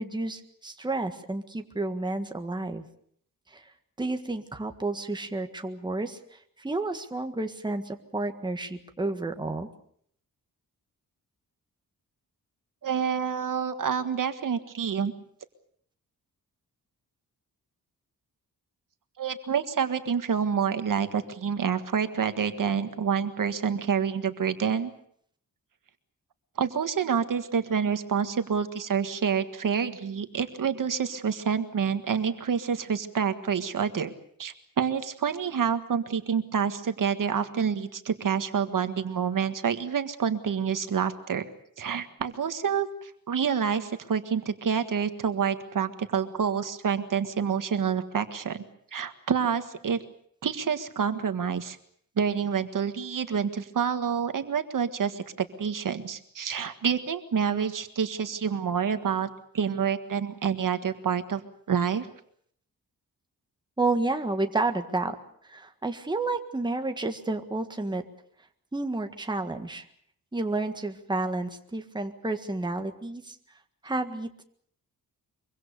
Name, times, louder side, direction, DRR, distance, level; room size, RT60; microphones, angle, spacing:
voice 1, 0.0-2.8 3.5-3.6 4.0-9.7 63.8-65.2 65.4-68.0 68.7-69.8 70.3-73.3 73.8-74.4, right 2 dB, 10° right, 6 dB, 1.7 m, -31 dB
voice 2, 12.8-15.1 19.2-24.9 26.6-34.1 34.4-41.5 41.8-48.6 48.9-50.0 50.4-51.8 52.2-59.3 59.5-61.4 61.7-62.1, right 7 dB, 65° right, 9 dB, 1.7 m, -28 dB
24.5 x 24.0 x 6.8 m, 0.64 s
wide cardioid pair, 130°, 35 cm